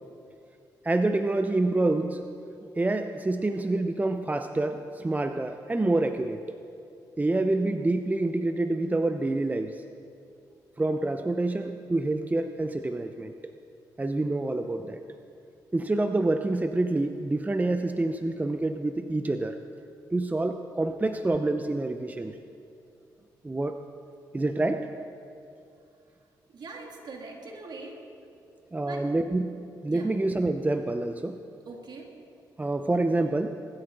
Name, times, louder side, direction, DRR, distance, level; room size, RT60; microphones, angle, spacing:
voice 1, 0.8-2.3 2.8-6.6 7.2-9.8 10.8-13.3 14.0-15.0 15.7-19.6 20.1-22.4 23.4-23.8 24.3-24.9 28.7-31.4 32.6-33.5, right 2 dB, 20° right, 7 dB, 0.7 m, -27 dB
voice 2, 26.5-28.0 28.8-29.0 29.9-30.1 31.7-32.1, right 3 dB, 60° right, 1 dB, 2.5 m, -42 dB
20.0 x 13.0 x 4.0 m, 2.5 s
supercardioid pair, 60°, 8 cm